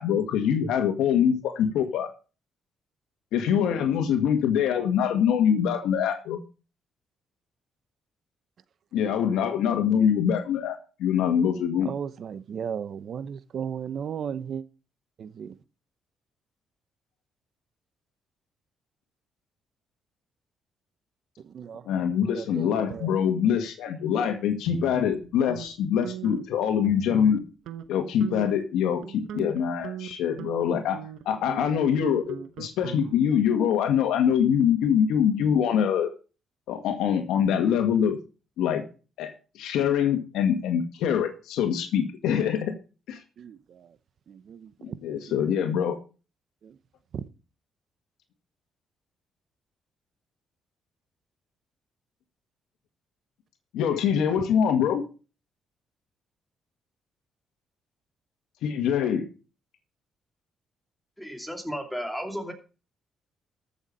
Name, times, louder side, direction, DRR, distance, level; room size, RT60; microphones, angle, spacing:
voice 1, 0.0-2.1 3.3-6.4 8.9-11.9 21.9-27.4 27.9-31.0 31.3-36.1 36.7-38.2 38.6-38.8 39.2-39.3 39.6-42.7 43.1-43.2 45.0-46.0 53.7-55.0 58.6-59.2, left 8 dB, 90° left, 1.8 m, -24 dB
voice 2, 11.8-14.6 15.2-15.5 21.4-21.8 22.3-23.1 43.4-43.6 44.3-44.7 46.6-46.7, right 7 dB, 60° right, 0.9 m, -35 dB
sound 1, 24.7-25.7 26.0-26.4 26.8-27.4 27.7-27.9 28.2-28.6 29.0-33.4, right 9 dB, 85° right, 0.9 m, -40 dB
voice 3, 61.2-62.5, equal, ahead, 2.6 m, -33 dB
14.0 x 7.1 x 5.4 m
cardioid pair, 90°, 0 cm